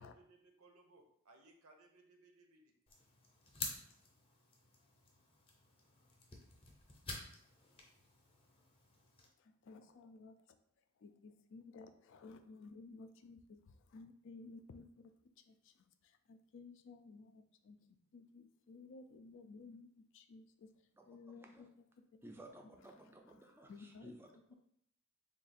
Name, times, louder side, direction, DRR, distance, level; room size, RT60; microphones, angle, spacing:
voice 1, 0.0-2.6, right 2 dB, 85° right, 4 dB, 0.8 m, -64 dB
sound 1, 2.9-9.3, left 3 dB, 25° left, 0.6 m, -50 dB
voice 2, 9.4-10.6 11.0-20.7 21.0-21.7 22.1-22.2 23.7-24.1, left 3 dB, 60° left, 9 dB, 0.3 m, -56 dB
voice 3, 21.3-21.7 22.2-24.5, right 1 dB, 10° right, 2 dB, 0.4 m, -56 dB
3.6 x 2.4 x 4.1 m, 0.69 s
head